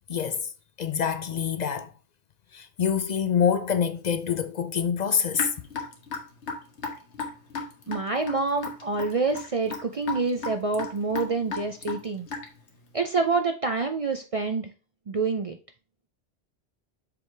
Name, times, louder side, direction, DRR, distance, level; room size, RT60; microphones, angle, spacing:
voice 1, 0.1-0.4 0.8-1.9 2.5-5.5, left 7 dB, 55° left, 0.5 m, -26 dB
Raindrop / Drip, 5.3-12.7, left 4 dB, 90° left, 1.5 m, -35 dB
voice 2, 7.9-12.3 12.9-14.7 15.1-15.6, right 4 dB, 45° right, 0.5 m, -27 dB
7.0 x 4.8 x 3.4 m
omnidirectional pair, 1.1 m